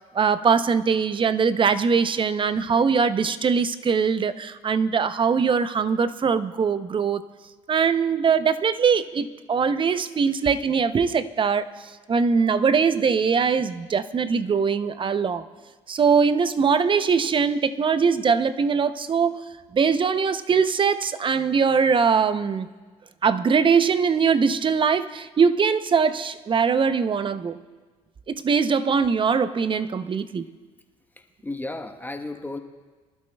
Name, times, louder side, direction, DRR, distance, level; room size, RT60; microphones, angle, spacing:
voice 1, 0.1-7.2 7.7-11.7 12.1-15.4 15.9-19.4 19.7-22.7 23.2-27.6 28.3-30.5, right 6 dB, 35° right, 13 dB, 0.7 m, -21 dB
voice 2, 31.1-32.6, left 2 dB, 10° left, 4 dB, 1.1 m, -35 dB
24.0 x 11.5 x 2.3 m, 1.4 s
hypercardioid pair, 65°, 15 cm